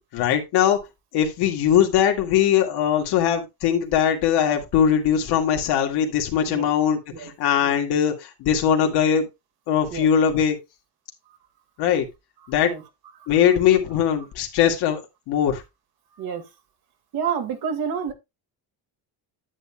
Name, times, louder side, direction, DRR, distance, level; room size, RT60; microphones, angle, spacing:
voice 1, 0.1-0.8 1.1-9.3 9.7-10.6 11.8-12.1 12.5-12.7 13.3-15.0 15.3-15.6, left 9 dB, 85° left, 2.1 m, -20 dB
voice 2, 12.4-12.8 13.2-13.6 16.1-16.5 17.1-18.1, right 7 dB, 70° right, 2.0 m, -30 dB
9.8 x 8.6 x 2.3 m
cardioid pair, 155°, 38 cm